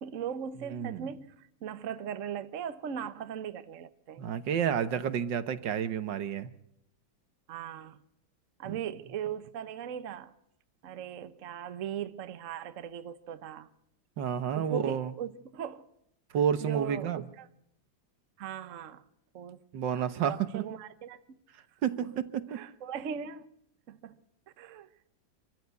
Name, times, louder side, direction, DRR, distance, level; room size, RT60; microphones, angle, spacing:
voice 1, 0.0-4.3 7.5-8.0 8.6-10.3 10.8-13.7 14.5-15.8 16.6-17.5 18.4-19.0 19.3-19.6 19.9-21.2 22.5-23.5 23.9-24.1 24.6-24.9, right 8 dB, 50° right, 1.1 m, -39 dB
voice 2, 0.7-1.1 4.2-6.5 8.6-8.8 14.2-15.1 16.3-17.2 19.7-20.7 21.8-22.6, right 8 dB, 70° right, 1.7 m, -30 dB
25.5 x 14.0 x 8.2 m
omnidirectional pair, 2.1 m